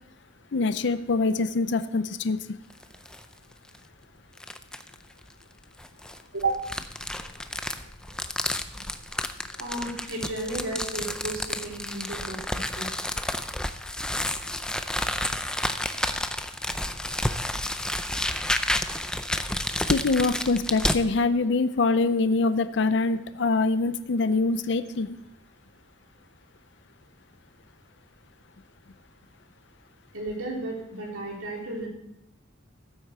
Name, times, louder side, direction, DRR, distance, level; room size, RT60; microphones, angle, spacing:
voice 1, 0.5-2.4 19.9-25.2, left 3 dB, 60° left, 12 dB, 0.5 m, -24 dB
sound 1, 2.7-3.2 3.7-3.8 4.4-4.9 5.8-21.0, left 1 dB, 5° left, 0.4 m, -30 dB
voice 2, 6.3-6.6 9.6-12.9 30.1-31.9, right 2 dB, 90° right, -2 dB, 3.6 m, -33 dB
14.5 x 8.1 x 4.4 m, 0.81 s
head